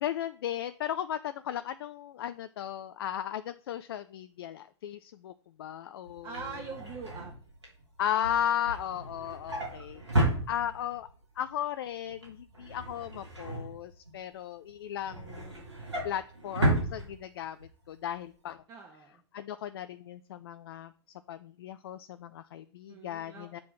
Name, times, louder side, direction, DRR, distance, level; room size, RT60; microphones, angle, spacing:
voice 1, 0.0-5.3 5.6-6.4 8.0-11.1 11.4-15.6 16.0-18.6 19.3-20.9 21.3-23.6, left 10 dB, 60° left, 12 dB, 0.4 m, -36 dB
Drawer open or close, 6.1-11.1 11.5-11.8 12.0-14.3 14.7-17.7 18.0-18.2 18.5-18.6, right 1 dB, 85° right, 3.0 m, -33 dB
voice 2, 6.2-7.3 9.7-10.0 18.7-19.2 22.9-23.6, right 5 dB, 30° right, 0 dB, 1.3 m, -44 dB
7.6 x 3.7 x 6.2 m, 0.43 s
figure-of-eight pair, 95°, 14 cm